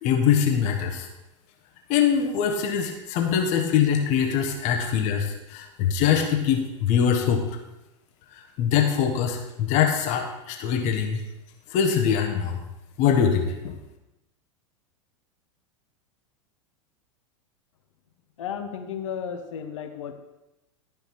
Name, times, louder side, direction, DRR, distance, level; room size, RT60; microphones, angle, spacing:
voice 1, 0.0-1.1 1.9-7.5 8.3-11.2 11.7-12.6 13.0-13.7, left 8 dB, 45° left, 4 dB, 1.3 m, -23 dB
voice 2, 18.4-20.1, left 7 dB, 70° left, 6 dB, 1.1 m, -33 dB
12.5 x 5.2 x 4.7 m, 0.97 s
figure-of-eight pair, 90°, 17 cm